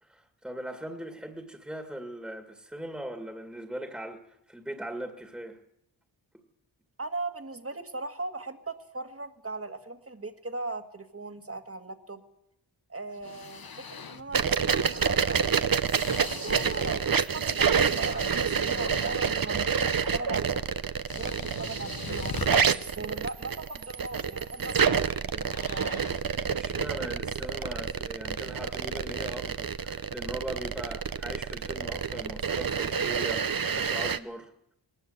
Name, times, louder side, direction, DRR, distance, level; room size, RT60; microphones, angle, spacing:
voice 1, 0.0-5.6 26.6-34.5, right 1 dB, ahead, 5 dB, 2.0 m, -40 dB
voice 2, 7.0-12.2 12.9-15.6 16.1-20.7 21.1-26.0, right 3 dB, 30° right, 7 dB, 1.9 m, -39 dB
sound 1, 13.1-14.4 14.9-17.2 17.6-19.5 20.7-20.8 21.1-22.5 24.8-25.0 25.4-26.3, left 5 dB, 50° left, 1.2 m, -42 dB
sound 2, 14.3-34.2, right 6 dB, 50° right, 0.9 m, -28 dB
20.5 x 19.0 x 8.0 m, 0.81 s
wide cardioid pair, 105°, 45 cm